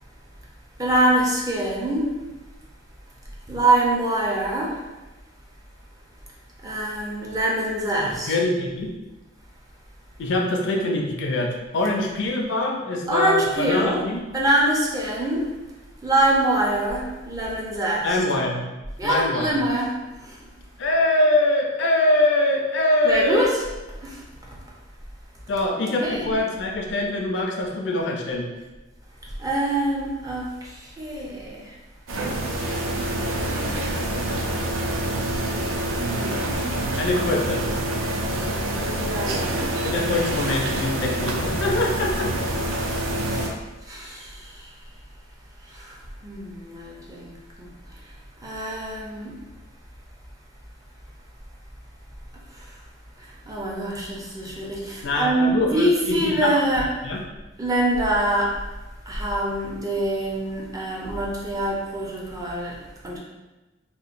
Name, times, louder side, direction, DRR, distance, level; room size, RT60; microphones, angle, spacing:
voice 1, 0.8-2.1 3.5-4.8 6.6-8.3 13.1-14.0 14.3-15.5 16.0-18.2 19.0-20.5 23.0-23.6 24.0-24.3 25.8-26.3 29.4-31.8 32.4-33.0 33.3-34.4 36.0-37.1 38.1-38.2 38.7-40.0 42.7-43.5 43.8-44.8 45.6-49.4 52.5-52.8 53.2-56.9 57.6-58.6 59.1-62.8 63.0-63.2, right 1 dB, 20° right, -4 dB, 0.4 m, -25 dB
voice 2, 8.3-9.0 10.2-14.2 18.0-18.7 19.0-19.6 20.8-23.4 25.5-28.5 37.0-37.6 39.8-42.3 55.0-55.9 56.2-56.5 57.0-57.2, left 2 dB, 65° left, 1 dB, 0.4 m, -23 dB
sound 1, 32.1-43.5, right 1 dB, 90° right, 0.4 m, -26 dB
2.8 x 2.1 x 2.4 m, 1.1 s
head